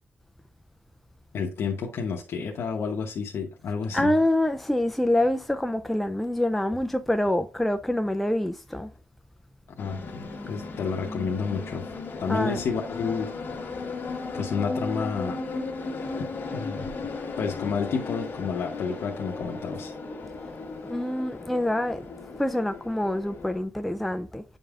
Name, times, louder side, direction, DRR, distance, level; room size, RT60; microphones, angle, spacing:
voice 1, 1.3-4.1 9.7-11.9 12.2-13.3 14.3-15.4 16.5-16.9 17.4-19.9, left 5 dB, 70° left, 0.8 m, -30 dB
voice 2, 3.9-8.9 12.2-12.6 20.8-22.1 22.4-24.4, left 1 dB, ahead, 0.3 m, -26 dB
sound 1, 9.8-23.6, left 3 dB, 50° left, 1.5 m, -36 dB
8.8 x 5.3 x 2.4 m
wide cardioid pair, 155°, 4 cm